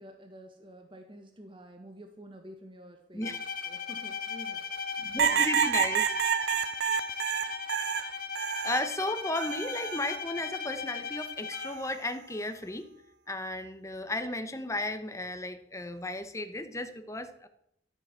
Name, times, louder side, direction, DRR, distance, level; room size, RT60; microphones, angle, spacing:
voice 1, 0.0-3.4 3.6-4.6 5.1-5.7, equal, 30° right, 4 dB, 1.5 m, -49 dB
Bowed string instrument, 3.2-12.0, left 6 dB, 50° left, 1.1 m, -38 dB
voice 2, 5.0-6.1 8.6-12.9 13.3-17.5, left 2 dB, 15° left, 8 dB, 1.2 m, -34 dB
sound 1, 5.2-8.9 9.4-10.2 11.5-11.9, right 8 dB, 65° right, 0.5 m, -29 dB
12.5 x 8.9 x 7.5 m, 0.76 s
head